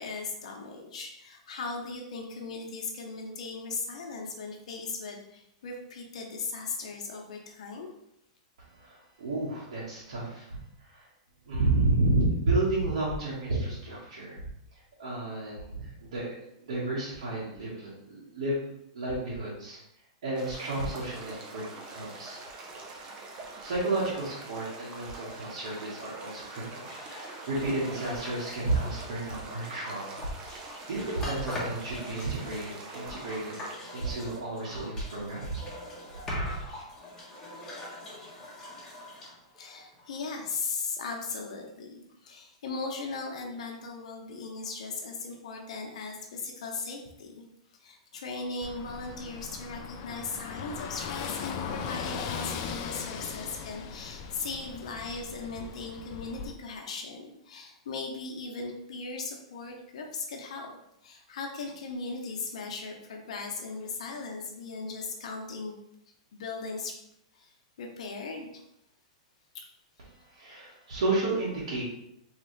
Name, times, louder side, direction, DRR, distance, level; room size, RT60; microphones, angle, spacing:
voice 1, 0.0-7.9 39.6-47.4 47.8-60.7 61.0-65.8 66.3-66.9 67.3-68.6 69.5-69.6, left 4 dB, 80° left, 1 dB, 0.8 m, -38 dB
voice 2, 8.7-11.0 11.5-14.4 14.7-18.6 18.9-19.8 20.2-22.4 23.0-23.1 23.6-26.9 27.1-30.3 30.6-33.6 33.9-35.6 36.3-36.5 70.3-71.8, right 2 dB, 80° right, -9 dB, 1.5 m, -31 dB
sound 1, 20.3-33.7, right 3 dB, 30° right, 0.7 m, -44 dB
sound 2, 26.8-40.4, left 1 dB, 15° left, 1.2 m, -43 dB
Car passing by / Engine, 48.6-56.5, left 6 dB, 45° left, 0.4 m, -38 dB
3.9 x 3.2 x 3.2 m, 0.80 s
hypercardioid pair, 140°, 3 cm